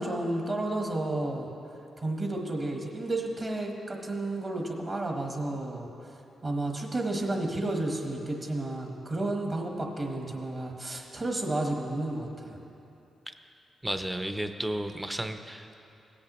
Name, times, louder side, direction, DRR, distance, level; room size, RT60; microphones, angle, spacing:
voice 1, 0.0-1.5 2.0-5.9 6.4-12.6, right 2 dB, 35° right, 1 dB, 1.2 m, -31 dB
voice 2, 13.8-15.8, right 1 dB, 10° right, 7 dB, 0.6 m, -33 dB
16.5 x 8.6 x 3.1 m, 2.8 s
cardioid pair, 100°, 0 cm